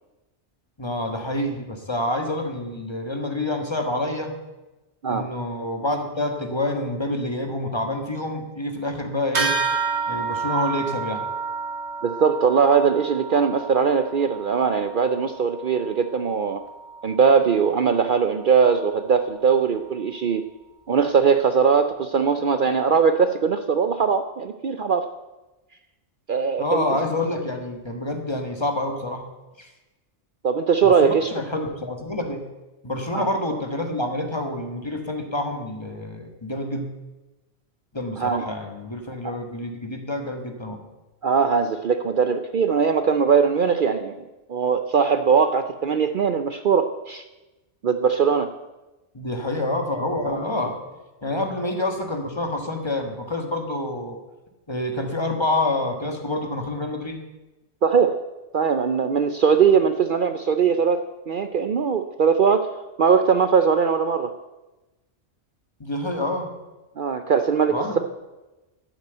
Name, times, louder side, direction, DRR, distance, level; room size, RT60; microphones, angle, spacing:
voice 1, 0.8-4.3 5.1-9.6 10.1-11.2 26.6-29.3 29.6-29.7 30.8-32.4 32.8-36.9 37.9-40.8 49.1-50.8 51.2-54.2 54.7-57.2 65.8-66.5 67.7-68.0, left 1 dB, 25° left, 4 dB, 1.5 m, -27 dB
sound 1, 9.3-19.2, right 5 dB, 70° right, 2.0 m, -31 dB
voice 2, 12.0-16.6 17.0-20.5 20.9-25.0 26.3-26.9 30.4-31.3 33.1-33.3 38.2-38.4 39.2-39.4 41.2-44.1 44.5-47.2 47.8-48.5 50.3-50.4 57.8-58.2 58.5-62.7 63.0-64.3 67.0-68.0, right 6 dB, 55° right, 8 dB, 0.7 m, -20 dB
12.0 x 9.1 x 8.0 m, 1.1 s
omnidirectional pair, 1.2 m